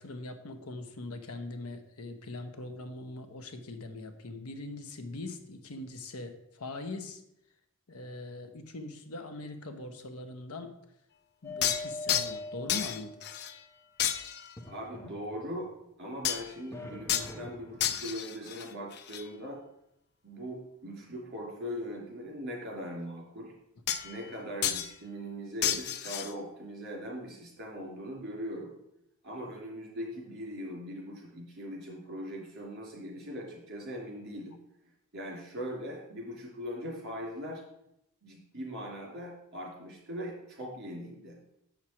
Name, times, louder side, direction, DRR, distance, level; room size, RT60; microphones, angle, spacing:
voice 1, 0.0-7.2 7.9-10.7 11.4-13.2, left 2 dB, 75° left, 8 dB, 0.9 m, -41 dB
sound 1, 11.4-13.4 14.6-15.8 16.7-18.1, left 2 dB, 10° left, 0.7 m, -43 dB
sound 2, 11.6-12.4 12.7-13.6 14.0-14.6 16.2-16.6 17.1-17.3 17.8-19.2 23.9-24.3 24.6-24.9 25.6-26.3, left 10 dB, 50° left, 0.5 m, -32 dB
voice 2, 14.6-15.7 16.0-19.6 20.2-23.5 24.0-28.7 29.2-34.6 35.1-37.6 38.2-41.4, equal, 50° right, -1 dB, 2.9 m, -40 dB
7.4 x 6.0 x 4.4 m, 0.80 s
head